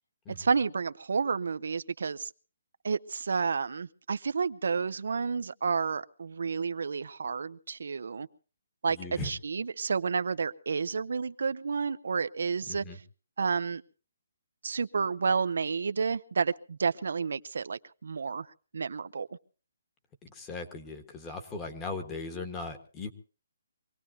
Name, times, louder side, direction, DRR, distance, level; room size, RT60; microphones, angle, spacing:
voice 1, 0.4-2.3 2.8-8.3 8.8-9.0 9.2-12.8 13.4-13.8 14.6-18.5 18.7-19.3, right 5 dB, 75° right, 0.7 m, -30 dB
voice 2, 8.9-9.3 12.7-13.0 20.3-23.1, left 3 dB, 15° left, 1.5 m, -38 dB
25.0 x 18.0 x 2.8 m
hypercardioid pair, 170°, 0 cm